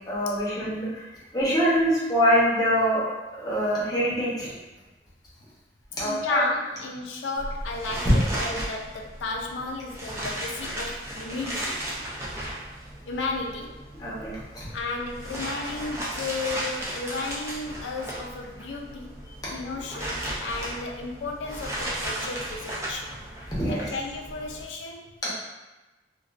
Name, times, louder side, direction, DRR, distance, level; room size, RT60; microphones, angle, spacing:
voice 1, 0.1-1.1 1.3-3.0 3.4-4.5 6.0-6.4 14.0-14.7 23.5-23.9 25.2-25.3, equal, 20° left, -8 dB, 0.7 m, -24 dB
voice 2, 6.0-11.8 13.1-13.8 14.7-19.2 19.5-23.1 23.7-25.1, left 3 dB, 80° left, 1 dB, 0.4 m, -33 dB
sound 1, 7.4-24.6, right 1 dB, 15° right, 0.4 m, -35 dB
2.3 x 2.2 x 2.4 m, 1.1 s
head